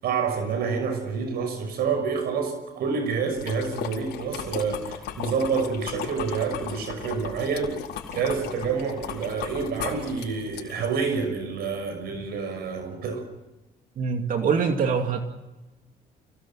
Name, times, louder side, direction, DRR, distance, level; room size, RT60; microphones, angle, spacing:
voice 1, 0.0-7.8 8.1-13.2, right 5 dB, 70° right, 6 dB, 6.1 m, -28 dB
sound 1, 3.3-11.0, left 9 dB, 75° left, 4.5 m, -37 dB
voice 2, 14.0-15.2, right 6 dB, 55° right, 4 dB, 2.6 m, -24 dB
29.5 x 18.0 x 7.6 m, 1.1 s
cardioid pair, 110°, 17 cm